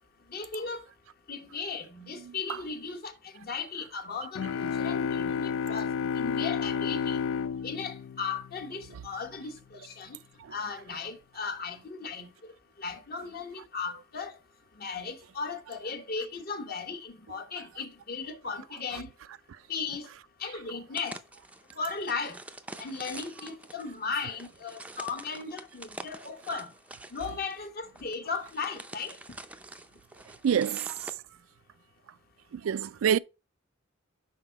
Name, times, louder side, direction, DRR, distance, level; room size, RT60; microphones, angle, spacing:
voice 1, 0.3-0.8 1.3-5.9 6.2-7.2 7.6-10.2 10.5-12.5 12.8-14.4 14.8-19.1 19.7-20.1 20.4-21.2 21.8-22.4 22.8-26.7 27.1-29.2, left 5 dB, 50° left, 1.1 m, -36 dB
sound 1, 4.3-9.0, left 6 dB, 80° left, 0.3 m, -31 dB
sound 2, 20.9-31.2, right 2 dB, 5° right, 0.4 m, -46 dB
voice 2, 30.4-31.1 32.5-33.2, right 8 dB, 80° right, 0.3 m, -27 dB
5.8 x 4.6 x 4.5 m
head